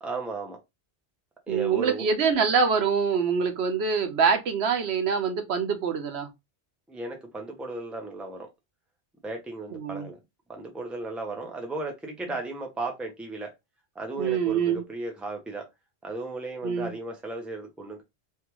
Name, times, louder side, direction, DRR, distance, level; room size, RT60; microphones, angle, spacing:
voice 1, 0.0-0.6 1.5-2.1 6.9-8.5 9.2-10.2 10.5-13.5 13.9-15.7 16.0-18.0, right 2 dB, ahead, 0.6 m, -35 dB
voice 2, 1.5-6.3 9.7-10.1 14.2-14.8 16.6-16.9, right 6 dB, 80° right, 1.0 m, -25 dB
3.4 x 2.4 x 2.9 m
omnidirectional pair, 1.1 m